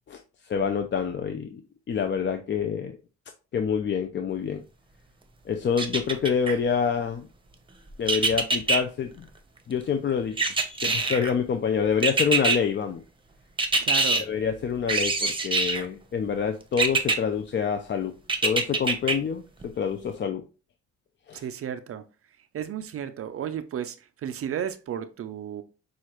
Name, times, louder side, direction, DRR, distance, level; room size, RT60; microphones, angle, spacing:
voice 1, 0.1-1.6 1.9-3.0 3.5-4.6 5.5-7.3 8.0-9.3 9.7-10.5 10.8-13.0 14.2-18.1 18.4-20.4 21.3-21.4, left 6 dB, 40° left, 0.5 m, -27 dB
sound 1, 5.8-6.5 8.1-8.8 10.4-11.3 12.0-12.6 13.6-14.2 14.9-15.8 16.8-17.2 18.3-19.1 19.6-19.7, right 3 dB, 15° right, 0.8 m, -24 dB
voice 2, 13.8-14.3 21.3-22.0 22.5-25.6, right 9 dB, 50° right, 0.4 m, -33 dB
6.2 x 2.4 x 3.0 m
cardioid pair, 90°, 30 cm